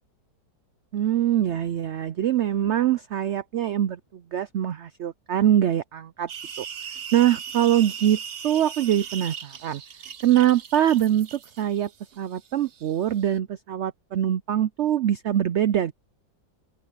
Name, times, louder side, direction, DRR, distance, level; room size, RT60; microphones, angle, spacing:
voice 1, 0.9-6.3 6.6-6.7 7.1-8.2 8.4-9.8 10.2-11.9 12.2-15.9, right 11 dB, 80° right, 0.6 m, -23 dB
sound 1, 6.3-13.4, right 7 dB, 45° right, 0.9 m, -39 dB
open air
omnidirectional pair, 1.8 m